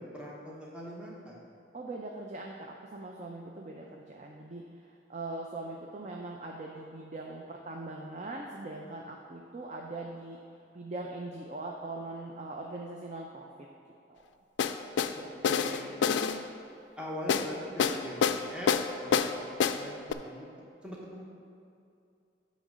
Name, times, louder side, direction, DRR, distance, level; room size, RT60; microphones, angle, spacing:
voice 1, 0.0-1.4 15.1-16.3 17.0-20.5 20.8-21.2, equal, 5° right, -5 dB, 0.9 m, -41 dB
voice 2, 1.7-10.4 10.7-13.7 14.1-14.2, right 2 dB, 40° right, 0 dB, 0.5 m, -41 dB
sound 1, 14.6-15.1 15.4-16.4 17.3-17.5 17.8-18.4 18.7-19.3 19.6-19.8 20.1-20.2, left 7 dB, 75° left, 0.3 m, -26 dB
8.8 x 3.2 x 6.2 m, 2.5 s
head